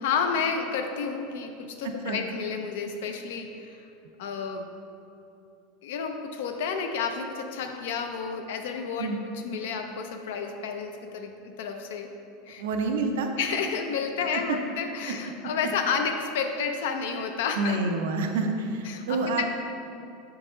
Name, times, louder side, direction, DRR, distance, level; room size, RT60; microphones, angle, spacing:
voice 1, 0.0-3.9 4.2-4.7 5.8-11.3 11.6-12.1 12.5-12.6 13.4-17.8 18.8-19.5, left 6 dB, 80° left, 4 dB, 0.5 m, -31 dB
voice 2, 12.6-13.3 14.3-14.4 17.6-19.5, right 3 dB, 85° right, 4 dB, 0.6 m, -28 dB
6.3 x 4.7 x 3.7 m, 2.7 s
supercardioid pair, 165°, 0 cm